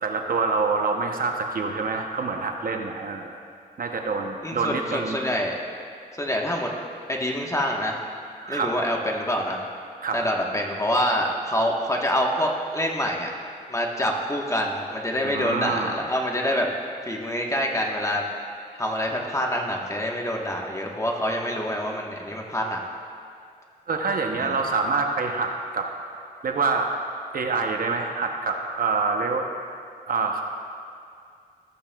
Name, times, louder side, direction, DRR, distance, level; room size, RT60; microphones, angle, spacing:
voice 1, 0.0-3.4 3.8-5.2 8.4-8.7 10.0-10.2 15.2-15.9 23.9-25.9 26.4-26.9 27.3-29.4 30.1-30.4, right 4 dB, 70° right, 3 dB, 0.8 m, -26 dB
voice 2, 4.4-5.5 6.2-6.7 7.1-8.0 8.5-9.6 10.1-13.3 13.7-16.7 17.0-18.2 18.8-22.8 24.4-24.5, equal, 20° left, 0 dB, 1.2 m, -26 dB
14.0 x 8.4 x 2.3 m, 2.3 s
cardioid pair, 70°, 15 cm